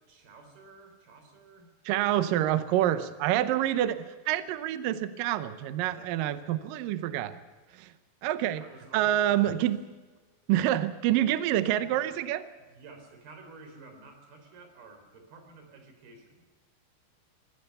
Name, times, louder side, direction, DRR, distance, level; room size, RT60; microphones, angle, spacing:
voice 1, 0.1-1.7 2.7-3.0 5.8-6.5 8.5-9.4 12.7-16.4, right 3 dB, 60° right, 6 dB, 5.3 m, -52 dB
voice 2, 1.9-7.3 7.7-7.9 8.2-8.6 8.9-9.8 10.5-12.4, right 12 dB, 80° right, 11 dB, 2.0 m, -27 dB
22.5 x 16.5 x 6.8 m, 1.3 s
omnidirectional pair, 5.0 m